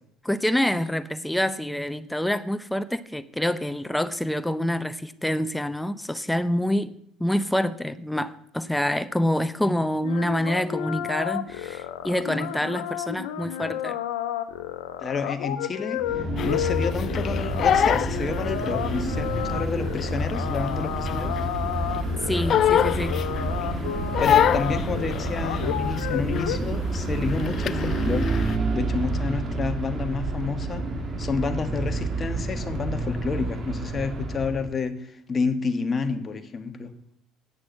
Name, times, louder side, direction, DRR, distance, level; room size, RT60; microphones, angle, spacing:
voice 1, 0.2-6.9 7.2-14.0 22.3-23.2, left 1 dB, 5° left, 0.7 m, -26 dB
sound 1, 10.0-26.6, left 11 dB, 80° left, 0.9 m, -32 dB
voice 2, 15.0-21.4 24.2-28.3 28.7-30.8 31.2-36.9, left 4 dB, 35° left, 1.4 m, -29 dB
sound 2, 16.0-34.7, right 2 dB, 40° right, 2.0 m, -29 dB
Crying sobbing, 16.4-19.0 19.4-21.6 21.9-23.7 24.1-26.1 26.3-26.7 26.9-28.6, left 10 dB, 50° left, 0.5 m, -25 dB
9.4 x 6.3 x 8.5 m
hypercardioid pair, 70°, 0 cm